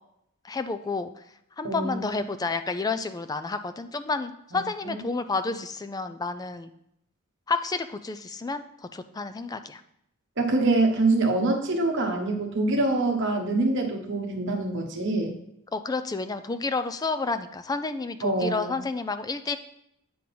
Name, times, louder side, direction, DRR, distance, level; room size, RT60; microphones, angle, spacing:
voice 1, 0.4-6.7 7.5-9.8 15.7-19.6, left 3 dB, 15° left, 10 dB, 0.3 m, -30 dB
voice 2, 1.6-2.0 4.8-4.9 10.4-15.3 18.2-18.7, right 2 dB, 55° right, 3 dB, 1.2 m, -25 dB
8.5 x 3.8 x 5.9 m, 0.77 s
head